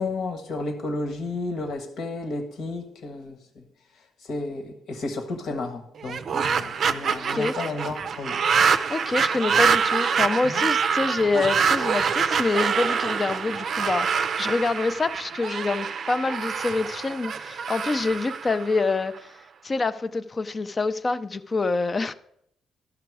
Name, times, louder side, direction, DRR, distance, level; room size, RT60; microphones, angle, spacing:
voice 1, 0.0-3.6 4.2-8.5 10.4-10.6, left 2 dB, 65° left, 1.4 m, -32 dB
sound 1, 6.0-19.2, right 6 dB, 55° right, 0.5 m, -25 dB
voice 2, 8.9-19.3 19.6-22.1, left 3 dB, 30° left, 0.5 m, -26 dB
13.0 x 5.8 x 4.8 m
cardioid pair, 90°, 0 cm